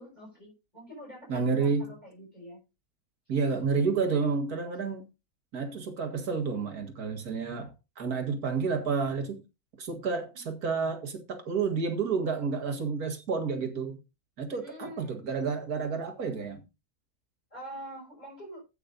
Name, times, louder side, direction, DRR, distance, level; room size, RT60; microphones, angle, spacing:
voice 1, 0.0-2.6 14.6-15.2 17.5-18.6, equal, 30° left, 6.3 m, -45 dB
voice 2, 1.3-1.9 3.3-5.1 5.5-9.4 9.8-14.0 14.4-16.6, right 5 dB, 85° right, 2.2 m, -30 dB
14.0 x 8.5 x 2.6 m
omnidirectional pair, 1.5 m